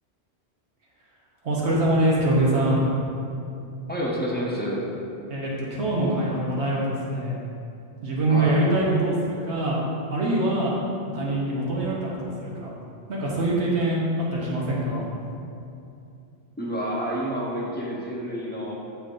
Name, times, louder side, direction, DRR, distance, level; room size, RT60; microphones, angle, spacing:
voice 1, 1.4-2.9 5.3-7.3 8.0-9.8 10.1-10.7 11.1-12.7 13.1-14.0 14.3-15.1, right 1 dB, 85° right, -5 dB, 1.3 m, -24 dB
voice 2, 3.9-4.9 8.3-8.6 16.6-18.7, equal, 10° left, -5 dB, 0.7 m, -29 dB
6.9 x 5.7 x 2.6 m, 2.6 s
omnidirectional pair, 1.1 m